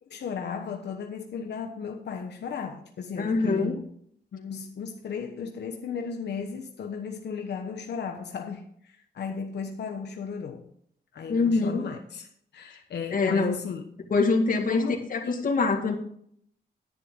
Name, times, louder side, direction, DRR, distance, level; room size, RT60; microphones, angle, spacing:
voice 1, 0.0-3.8 4.3-10.7 11.1-12.3 12.5-13.8 14.7-15.4, left 6 dB, 90° left, 1.1 m, -35 dB
voice 2, 3.2-3.8 11.3-11.9 13.1-13.6 14.1-14.8 15.1-15.9, left 3 dB, 55° left, 1.9 m, -24 dB
10.5 x 9.9 x 3.7 m
wide cardioid pair, 165°, 17 cm